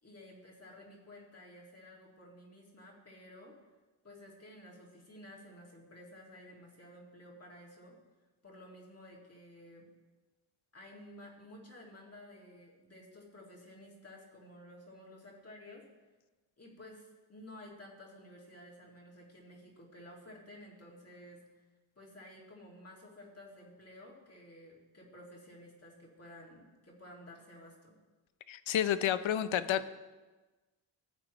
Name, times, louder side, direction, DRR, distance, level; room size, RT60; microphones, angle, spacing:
voice 1, 0.0-3.5 4.0-8.0 8.4-9.9 10.7-15.8 16.6-21.6 22.0-28.0, left 1 dB, 30° left, -3 dB, 2.1 m, -53 dB
voice 2, 28.5-29.9, left 10 dB, 85° left, 13 dB, 0.6 m, -30 dB
15.0 x 8.8 x 3.0 m, 1.2 s
wide cardioid pair, 125°, 46 cm